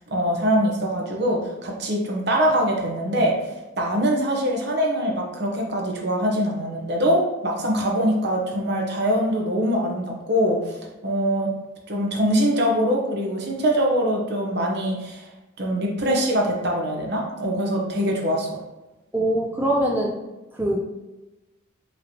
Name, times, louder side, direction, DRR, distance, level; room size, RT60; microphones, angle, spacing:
voice 1, 0.1-3.4 3.8-10.7 11.0-11.5 11.9-15.3 15.6-18.6, equal, 55° right, 0 dB, 0.9 m, -23 dB
voice 2, 19.1-20.1 20.5-20.8, right 1 dB, 10° right, -3 dB, 0.4 m, -22 dB
5.1 x 3.1 x 2.8 m, 1.0 s
head